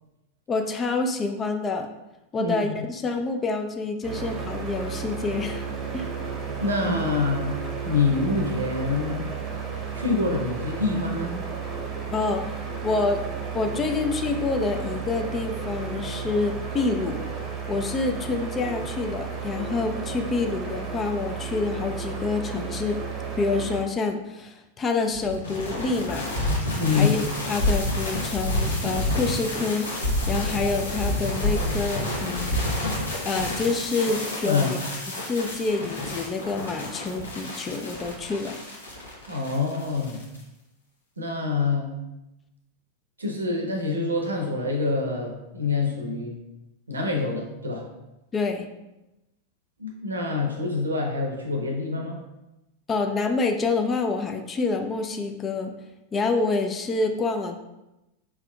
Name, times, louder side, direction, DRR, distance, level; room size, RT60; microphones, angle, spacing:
voice 1, 0.5-1.9 2.3-5.7 5.9-6.1 12.1-12.6 12.8-13.2 13.5-17.2 17.7-23.0 23.4-26.3 26.9-27.2 27.5-29.9 30.3-32.6 33.2-34.8 35.2-38.6 48.3-48.7 52.9-55.7 56.1-57.6, left 3 dB, 20° left, 4 dB, 0.4 m, -27 dB
voice 2, 2.4-2.7 6.6-7.6 7.8-9.2 9.9-11.3 26.8-27.1 34.4-34.7 39.3-40.2 41.2-41.9 43.2-46.3 46.9-47.8 49.8-52.2, left 3 dB, 75° right, 1 dB, 0.7 m, -26 dB
sound 1, 4.0-23.8, right 6 dB, 25° right, 0.8 m, -33 dB
sound 2, 25.1-40.4, left 1 dB, 75° left, 1.0 m, -29 dB
4.7 x 3.5 x 2.2 m, 0.95 s
figure-of-eight pair, 90°, 0 cm